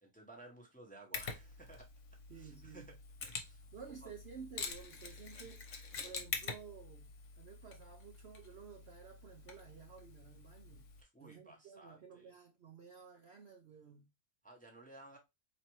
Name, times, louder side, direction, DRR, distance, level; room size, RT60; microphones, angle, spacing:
voice 1, 0.0-1.9 2.3-2.9 3.3-3.6 4.0-4.1 11.0-12.4 14.4-15.2, right 2 dB, 5° left, 0.8 m, -56 dB
Mechanisms, 1.1-11.0, left 5 dB, 60° left, 1.2 m, -47 dB
voice 2, 2.3-3.0 3.7-7.1 7.4-10.9 11.2-14.1, right 6 dB, 60° right, 0.7 m, -53 dB
4.2 x 3.0 x 3.0 m
omnidirectional pair, 1.6 m